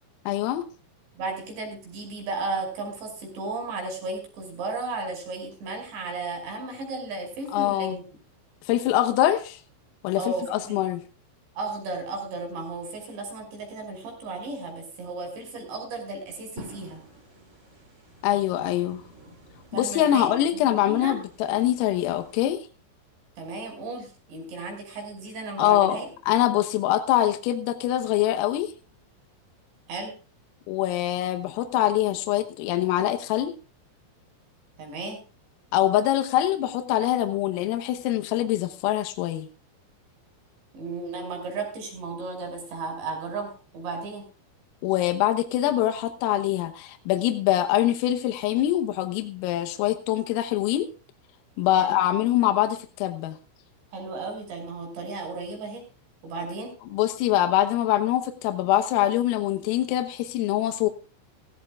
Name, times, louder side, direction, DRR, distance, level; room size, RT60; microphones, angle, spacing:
voice 1, 0.3-0.7 7.5-8.0 8.7-9.6 10.0-10.2 10.5-11.0 18.2-19.0 19.7-22.7 25.6-26.0 26.3-28.7 30.7-33.5 35.7-39.5 44.8-50.9 51.6-53.4 56.9-60.9, left 13 dB, 85° left, 6 dB, 3.7 m, -24 dB
voice 2, 1.2-8.0 10.1-10.8 11.6-17.0 19.7-20.3 20.7-21.2 23.4-26.1 29.9-30.1 34.8-35.2 40.7-44.2 51.8-52.0 53.9-55.8 56.2-56.7, right 3 dB, 60° right, 3 dB, 8.0 m, -34 dB
sound 1, 16.6-22.4, right 1 dB, 20° right, 2.6 m, -49 dB
17.5 x 17.5 x 2.4 m, 0.36 s
omnidirectional pair, 6.0 m